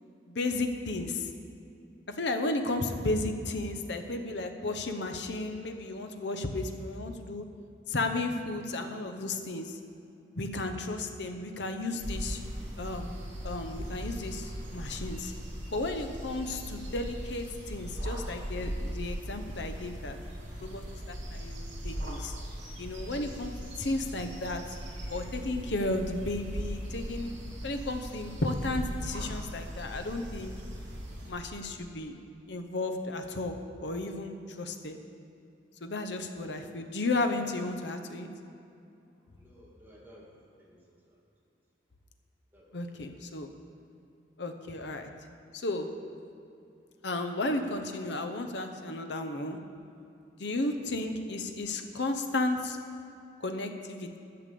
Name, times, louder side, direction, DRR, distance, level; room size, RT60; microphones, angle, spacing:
voice 1, 0.3-1.3 2.1-7.4 7.9-9.8 10.3-12.4 12.8-13.2 13.4-15.3 15.7-20.2 20.6-22.3 22.8-24.6 25.1-27.3 27.6-30.5 31.3-32.2 32.5-35.0 35.8-38.3 42.7-43.5 44.4-45.1 45.5-45.9 47.0-49.6 50.4-52.8 53.4-54.2, left 2 dB, 70° left, 6 dB, 0.8 m, -33 dB
sound 1, 12.0-31.3, equal, 80° right, 2.9 m, -39 dB
voice 2, 39.3-41.2 42.5-42.9 50.7-50.9, equal, 10° right, -4 dB, 1.9 m, -56 dB
11.0 x 6.8 x 6.8 m, 2.6 s
head